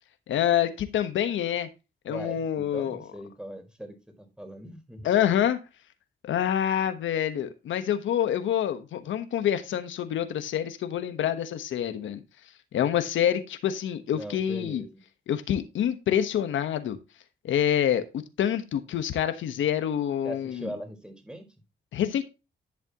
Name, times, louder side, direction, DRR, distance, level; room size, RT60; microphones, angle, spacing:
voice 1, 0.3-1.7 2.0-3.0 5.0-5.6 6.2-12.2 12.7-14.8 15.3-17.0 17.4-18.0 18.4-20.7 21.9-22.2, left 10 dB, 85° left, 1.2 m, -26 dB
voice 2, 2.1-5.1 14.1-15.0 20.2-21.5, equal, 5° right, 4.3 m, -40 dB
11.0 x 7.2 x 2.9 m
cardioid pair, 65°, 19 cm